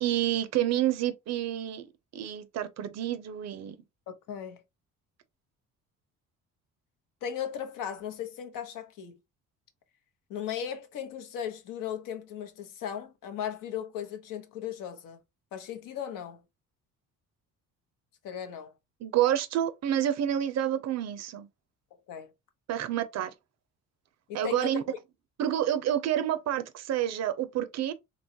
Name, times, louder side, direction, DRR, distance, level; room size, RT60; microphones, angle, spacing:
voice 1, 0.0-1.9 2.1-3.8 19.0-21.5 22.7-23.3 24.3-24.8 25.4-27.9, right 11 dB, 55° right, 0.5 m, -28 dB
voice 2, 4.1-4.6 7.2-9.2 10.3-15.2 15.5-16.4 18.2-18.7 22.1-22.3 24.3-24.8, left 9 dB, 75° left, 0.7 m, -37 dB
2.9 x 2.3 x 2.7 m
cardioid pair, 95°, 33 cm